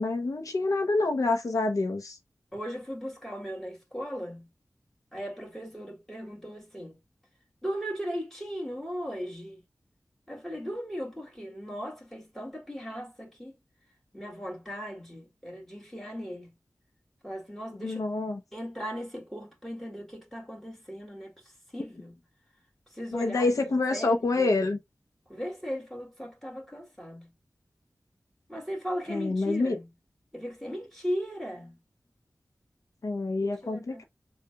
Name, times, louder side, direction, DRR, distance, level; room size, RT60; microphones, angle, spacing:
voice 1, 0.0-2.2 17.8-18.4 23.1-24.8 29.1-29.8 33.0-34.0, left 3 dB, 75° left, 0.8 m, -27 dB
voice 2, 2.5-4.5 5.1-7.0 7.6-9.6 10.3-13.5 14.1-16.5 17.2-18.0 18.5-22.2 22.9-23.5 23.9-24.5 25.3-27.3 28.5-29.9 30.3-31.8 33.6-34.0, equal, 5° left, 2.0 m, -37 dB
6.7 x 2.4 x 2.3 m
wide cardioid pair, 80°, 6 cm